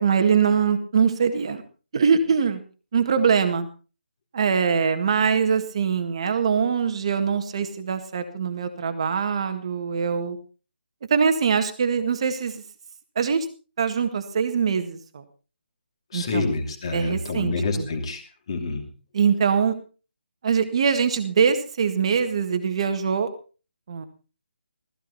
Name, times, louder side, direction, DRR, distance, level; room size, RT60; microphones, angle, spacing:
voice 1, 0.0-1.6 1.9-2.6 2.9-3.7 4.3-10.4 11.1-12.6 13.2-13.5 13.8-15.2 16.1-16.5 16.9-17.9 19.1-19.8 20.4-23.3 23.9-24.1, right 6 dB, 30° right, 8 dB, 1.7 m, -23 dB
voice 2, 16.1-18.2 18.5-18.8, left 3 dB, 30° left, 5 dB, 2.8 m, -27 dB
15.5 x 15.0 x 4.1 m, 0.35 s
hypercardioid pair, 180°, 6 cm